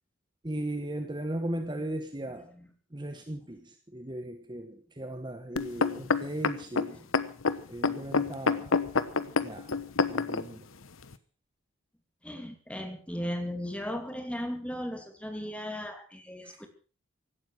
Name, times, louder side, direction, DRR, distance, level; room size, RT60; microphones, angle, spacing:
voice 1, 0.4-2.5 2.9-7.0 7.7-8.8 9.4-9.8 10.1-10.7 16.4-16.6, right 1 dB, 20° right, 7 dB, 1.3 m, -37 dB
sound 1, 5.6-10.4 11.1-11.2, left 4 dB, 75° left, 1.0 m, -27 dB
voice 2, 12.2-16.7, equal, 5° left, 5 dB, 2.7 m, -36 dB
16.5 x 12.0 x 6.2 m, 0.39 s
head